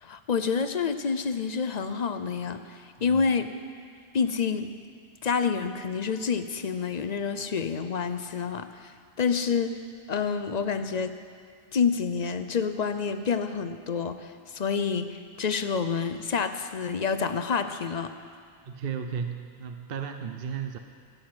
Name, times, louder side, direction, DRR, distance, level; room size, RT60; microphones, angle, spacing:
voice 1, 0.0-3.5 4.1-4.7 5.2-8.9 9.2-9.8 10.1-11.2 11.7-18.1, left 5 dB, 45° left, 9 dB, 0.7 m, -28 dB
voice 2, 18.7-20.8, right 7 dB, 60° right, 6 dB, 0.9 m, -34 dB
15.0 x 7.9 x 8.8 m, 2.2 s
omnidirectional pair, 1.2 m